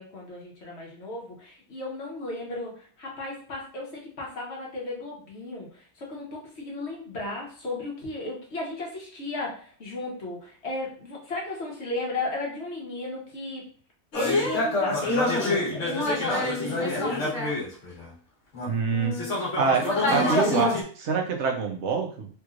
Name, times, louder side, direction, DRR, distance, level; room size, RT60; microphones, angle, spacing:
voice 1, 0.0-13.7 14.1-17.4, left 2 dB, 65° left, -2 dB, 1.4 m, -34 dB
sound 1, 14.1-18.1 18.5-20.8, left 2 dB, 90° left, 1.5 m, -26 dB
voice 2, 18.7-19.2 19.5-22.3, right 5 dB, 75° right, 3 dB, 1.0 m, -26 dB
3.5 x 3.1 x 2.4 m, 0.42 s
omnidirectional pair, 1.2 m